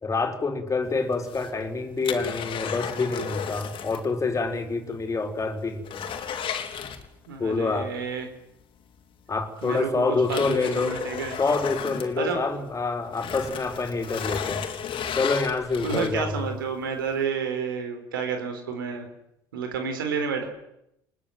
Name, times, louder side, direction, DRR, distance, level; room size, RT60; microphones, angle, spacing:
voice 1, 0.0-6.0 7.4-7.9 9.3-10.9 11.4-14.6 15.2-16.5, left 3 dB, 30° left, 6 dB, 4.8 m, -27 dB
sound 1, 1.1-4.1 4.4-4.5 5.0-5.1 5.4-7.5 8.9-9.0 9.6-12.7 13.1-16.4 16.9-17.0, left 8 dB, 50° left, 3.6 m, -34 dB
voice 2, 7.3-8.3 9.6-11.4 12.2-12.5 15.8-19.0 19.5-20.5, right 5 dB, 85° right, 6 dB, 4.4 m, -30 dB
29.0 x 20.5 x 8.0 m, 0.79 s
hypercardioid pair, 65°, 11 cm